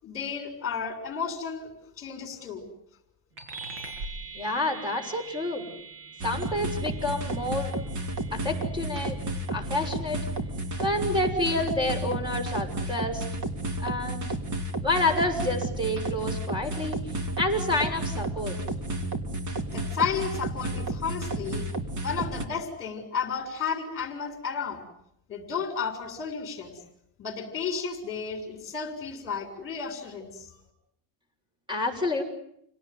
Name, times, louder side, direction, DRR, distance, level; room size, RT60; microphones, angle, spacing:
voice 1, 0.0-2.6 19.7-21.6 22.0-24.8 25.3-26.8 27.2-30.5, left 6 dB, 25° left, 6 dB, 6.8 m, -33 dB
sound 1, 3.4-13.2, right 4 dB, 70° right, 7.1 m, -45 dB
voice 2, 4.3-5.7 6.2-7.7 8.3-9.2 9.5-10.2 10.8-13.2 13.8-14.3 14.8-17.0 17.4-18.5 31.7-32.2, left 2 dB, 10° right, 7 dB, 6.4 m, -28 dB
sound 2, 6.2-22.4, right 1 dB, 35° right, 3.1 m, -32 dB
29.0 x 18.5 x 9.6 m, 0.75 s
cardioid pair, 150°, 48 cm